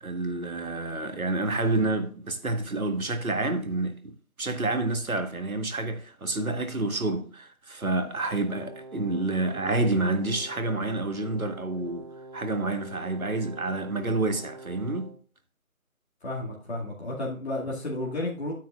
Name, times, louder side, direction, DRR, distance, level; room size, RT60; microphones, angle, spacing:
voice 1, 0.0-12.1 12.3-15.1, right 2 dB, 80° right, 1.5 m, -28 dB
Brass instrument, 8.3-15.2, right 2 dB, 25° right, 1.0 m, -45 dB
voice 2, 16.2-18.5, left 1 dB, 50° left, 2.2 m, -32 dB
9.7 x 9.0 x 2.4 m
figure-of-eight pair, 170°, 42 cm